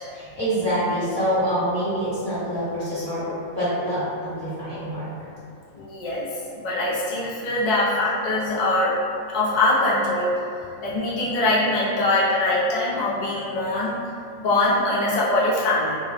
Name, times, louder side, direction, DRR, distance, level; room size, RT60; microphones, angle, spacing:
voice 1, 0.1-5.1, equal, 20° left, -16 dB, 0.8 m, -26 dB
voice 2, 5.7-6.3 6.5-8.9 9.3-10.3 10.8-14.0 14.4-15.9, left 2 dB, 70° left, -8 dB, 0.4 m, -22 dB
2.9 x 2.2 x 2.4 m, 2.5 s
omnidirectional pair, 1.5 m